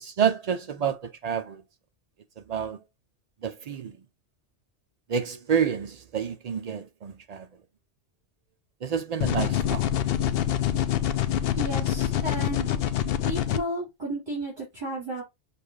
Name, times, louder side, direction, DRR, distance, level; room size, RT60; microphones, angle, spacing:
voice 1, 0.0-1.6 2.5-2.8 3.4-4.0 5.1-7.5 8.8-9.9, right 7 dB, 75° right, 0.3 m, -28 dB
sound 1, 9.2-13.6, left 11 dB, 65° left, 0.7 m, -26 dB
voice 2, 11.5-12.7 13.3-15.2, right 1 dB, 45° right, 3.0 m, -33 dB
6.7 x 2.5 x 3.1 m
omnidirectional pair, 1.2 m